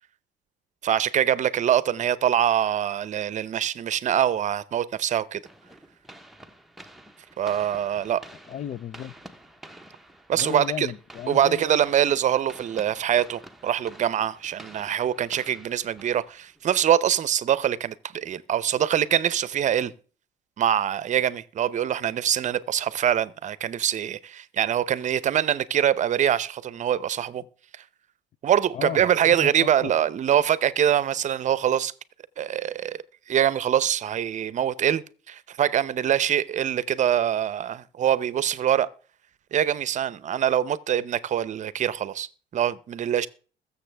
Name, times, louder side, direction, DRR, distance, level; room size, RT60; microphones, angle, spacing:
voice 1, 0.8-5.4 7.4-8.2 10.3-10.9 11.3-19.9 20.6-27.4 28.4-31.9 32.4-33.0 33.3-38.9 39.5-42.3 42.5-43.3, right 10 dB, 45° right, 0.7 m, -24 dB
sound 1, 5.5-16.7, right 1 dB, ahead, 1.0 m, -48 dB
voice 2, 8.5-9.1 10.3-11.8 28.7-29.9, left 10 dB, 45° left, 0.5 m, -35 dB
21.5 x 7.1 x 3.4 m
cardioid pair, 110°, 17 cm